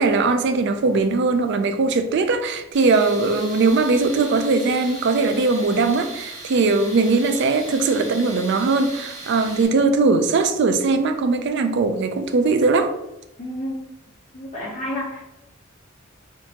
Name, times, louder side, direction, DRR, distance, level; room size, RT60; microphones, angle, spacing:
voice 1, 0.0-12.9, right 3 dB, 60° right, 0.4 m, -20 dB
Tools, 2.7-9.6, right 2 dB, 35° right, 1.1 m, -38 dB
voice 2, 13.4-13.8 14.3-15.2, left 1 dB, 40° left, 0.8 m, -30 dB
3.6 x 2.6 x 2.9 m
head